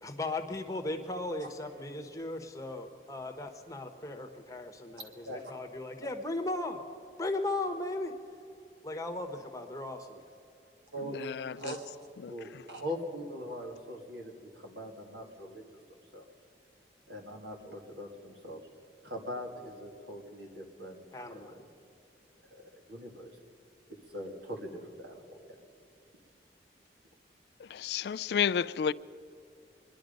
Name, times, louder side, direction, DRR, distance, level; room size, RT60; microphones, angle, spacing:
voice 1, 0.0-6.8 7.2-8.1 8.8-10.2 21.1-21.5, left 2 dB, 20° left, 4 dB, 1.1 m, -37 dB
voice 2, 11.5-16.3 17.1-18.6 19.0-21.7 22.5-23.4 23.9-25.4, equal, 80° right, 2 dB, 2.3 m, -42 dB
voice 3, 27.7-28.9, left 7 dB, 65° left, 18 dB, 0.3 m, -29 dB
24.0 x 11.0 x 5.2 m, 2.6 s
head